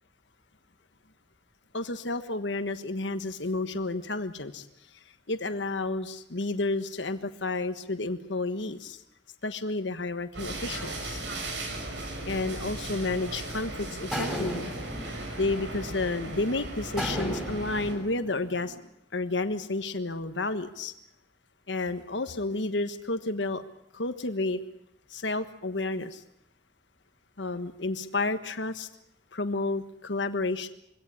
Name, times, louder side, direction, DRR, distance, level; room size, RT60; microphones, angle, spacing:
voice 1, 1.7-4.7 4.9-9.0 9.4-11.2 12.2-14.7 15.4-18.8 19.1-20.9 21.7-23.6 23.9-24.6 25.1-26.2 27.4-28.9 29.3-30.7, left 2 dB, 75° left, 9 dB, 1.4 m, -31 dB
sound 1, 10.3-17.9, right 2 dB, 80° right, 5.6 m, -37 dB
sound 2, 14.1-16.3 17.0-18.8, equal, ahead, 6.3 m, -36 dB
23.5 x 17.5 x 9.8 m, 0.79 s
head